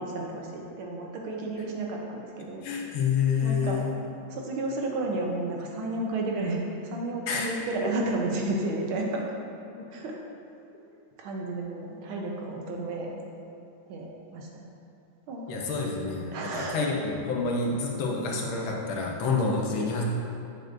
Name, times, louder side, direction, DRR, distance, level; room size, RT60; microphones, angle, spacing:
voice 1, 0.0-2.6 3.4-3.8 4.3-9.3 9.9-10.2 11.2-13.1 13.9-14.7 15.3-15.7 16.3-16.9, right 2 dB, 80° right, 0 dB, 1.7 m, -32 dB
voice 2, 2.6-3.9 7.3-7.5 7.8-7.9 9.8-9.9 15.5-20.0, left 4 dB, 80° left, -1 dB, 1.7 m, -28 dB
7.7 x 6.6 x 2.6 m, 2.8 s
omnidirectional pair, 2.3 m